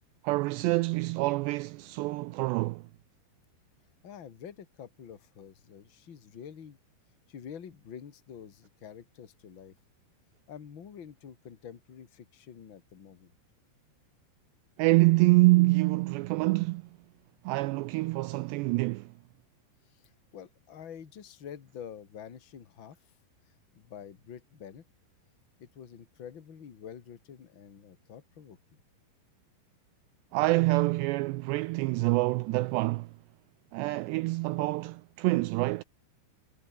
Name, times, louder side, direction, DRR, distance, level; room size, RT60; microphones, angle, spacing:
voice 1, 0.2-2.8 14.8-16.8 17.5-19.1 30.3-33.1 33.7-35.8, right 22 dB, 85° right, 2.5 m, -26 dB
voice 2, 4.0-6.8 7.3-9.7 10.5-13.3 19.9-23.0 23.5-24.8 25.6-28.8, left 8 dB, 40° left, 1.8 m, -47 dB
omnidirectional pair, 5.4 m